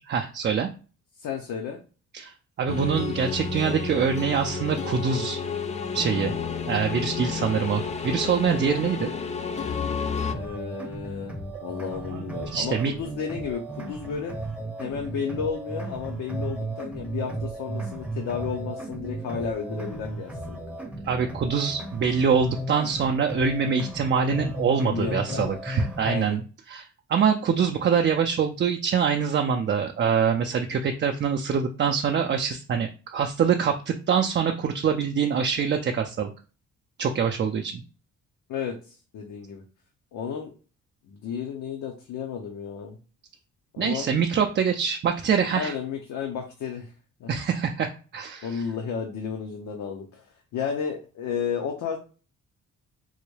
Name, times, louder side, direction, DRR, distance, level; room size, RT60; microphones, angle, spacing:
voice 1, 0.1-0.7 2.1-2.3 2.6-5.4 5.9-6.4 6.7-9.1 11.6-11.7 12.1-12.9 21.1-36.3 37.0-37.8 43.8-45.7 47.3-48.6, right 6 dB, 40° right, 4 dB, 0.4 m, -25 dB
voice 2, 1.2-1.8 10.2-11.4 11.6-14.3 14.8-20.6 24.8-25.6 26.0-26.4 38.5-39.6 40.1-40.5 41.1-43.0 43.7-44.1 45.5-46.9 47.2-47.3 48.4-50.3 50.5-52.0, left 7 dB, 75° left, 2 dB, 0.7 m, -32 dB
sound 1, 2.7-10.3, left 5 dB, 25° left, 0.4 m, -31 dB
sound 2, 10.3-26.3, right 1 dB, 5° right, 0.7 m, -35 dB
3.8 x 2.2 x 3.1 m, 0.36 s
cardioid pair, 90°, 30 cm